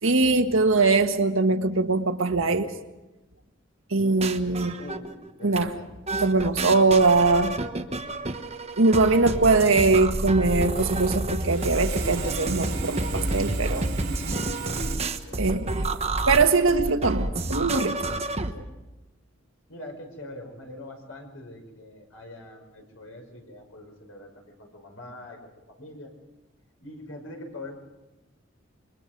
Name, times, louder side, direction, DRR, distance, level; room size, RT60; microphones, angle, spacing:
voice 1, 0.0-2.7 3.9-4.7 5.4-5.7 6.1-7.6 8.8-13.9 15.4-15.8 16.3-18.0, right 3 dB, 75° right, 6 dB, 1.6 m, -22 dB
sound 1, 4.0-5.3 5.6-5.7 6.1-18.5, right 2 dB, 30° right, 1.1 m, -29 dB
voice 2, 4.8-5.9 15.2-15.6 18.5-18.9 19.7-25.4 25.7-26.1 26.8-27.7, left 1 dB, 75° left, 3 dB, 5.7 m, -43 dB
Sawing, 11.4-14.9, right 4 dB, 50° right, 5.0 m, -36 dB
27.5 x 23.5 x 5.3 m, 1.0 s
head